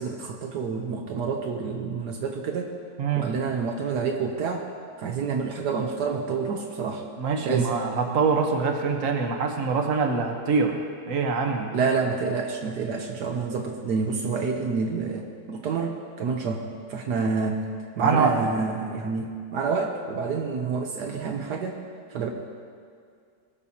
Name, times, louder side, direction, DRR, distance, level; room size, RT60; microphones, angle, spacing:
voice 1, 0.0-2.8 3.1-4.7 5.0-7.0 7.4-7.7 11.7-16.6 16.9-17.6 18.0-21.8 22.1-22.3, right 5 dB, 75° right, 2 dB, 1.4 m, -28 dB
voice 2, 3.0-3.3 7.2-11.7 18.0-18.3, right 5 dB, 55° right, 3 dB, 1.5 m, -24 dB
21.5 x 12.5 x 2.9 m, 2.2 s
omnidirectional pair, 1.8 m